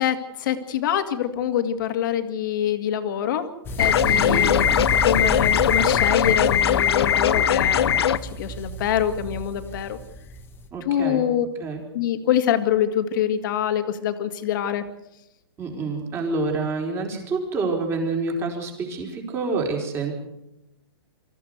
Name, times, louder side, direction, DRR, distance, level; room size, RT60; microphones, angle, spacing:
voice 1, 0.0-3.5 3.8-7.9 8.4-10.0 10.9-11.5 11.9-14.8, left 10 dB, 50° left, 8 dB, 2.2 m, -25 dB
sound 1, 3.6-10.7, right 1 dB, 15° left, 1.6 m, -32 dB
sound 2, 3.8-8.2, left 9 dB, 65° left, 1.0 m, -20 dB
voice 2, 4.1-4.5 10.7-11.2 11.6-11.8 15.6-20.1, right 3 dB, 20° right, 2 dB, 4.5 m, -27 dB
25.0 x 15.0 x 8.1 m, 0.90 s
hypercardioid pair, 150°, 14 cm